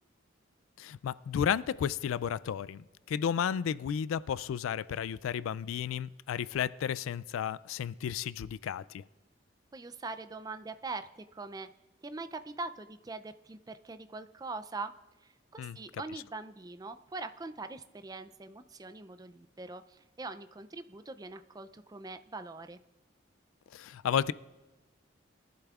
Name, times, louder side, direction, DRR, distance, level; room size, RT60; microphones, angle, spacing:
voice 1, 0.8-9.0 15.6-15.8 23.7-24.3, left 8 dB, 85° left, 19 dB, 0.3 m, -33 dB
voice 2, 9.7-11.7 12.0-14.9 15.2-22.8, right 3 dB, 20° right, 10 dB, 0.4 m, -42 dB
21.5 x 11.5 x 2.4 m, 1.2 s
head